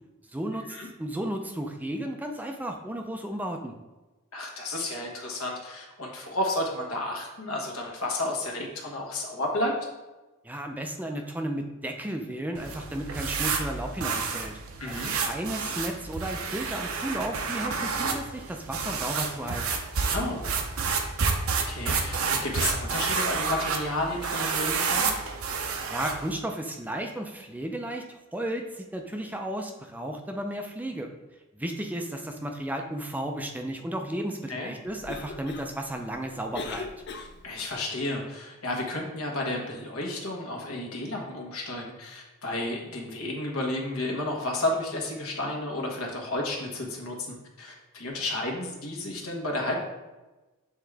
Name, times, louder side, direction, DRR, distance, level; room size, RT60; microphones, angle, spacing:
voice 1, 0.3-3.7 10.4-14.6 14.9-19.7 25.9-31.1 31.5-36.9, right 1 dB, 10° right, 4 dB, 0.4 m, -34 dB
voice 2, 4.3-9.7 14.8-15.1 20.1-20.5 21.5-25.1 34.5-34.7 37.4-49.8, left 1 dB, 75° left, 0 dB, 1.3 m, -32 dB
sound 1, 12.5-26.3, right 5 dB, 75° right, 0.7 m, -30 dB
Cough, 34.8-37.7, left 4 dB, 50° left, 0.5 m, -40 dB
7.8 x 3.6 x 3.3 m, 1.1 s
head